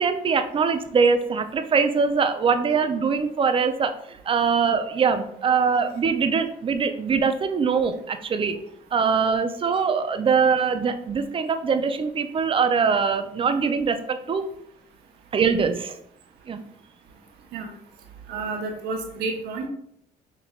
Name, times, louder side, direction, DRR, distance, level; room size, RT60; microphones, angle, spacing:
voice 1, 0.0-3.9 4.3-8.6 8.9-14.5 15.3-16.0 16.5-16.6, right 5 dB, 30° right, 9 dB, 0.4 m, -22 dB
voice 2, 18.3-19.7, right 3 dB, 75° right, 2 dB, 1.0 m, -30 dB
5.8 x 3.2 x 2.3 m, 0.69 s
cardioid pair, 110°, 17 cm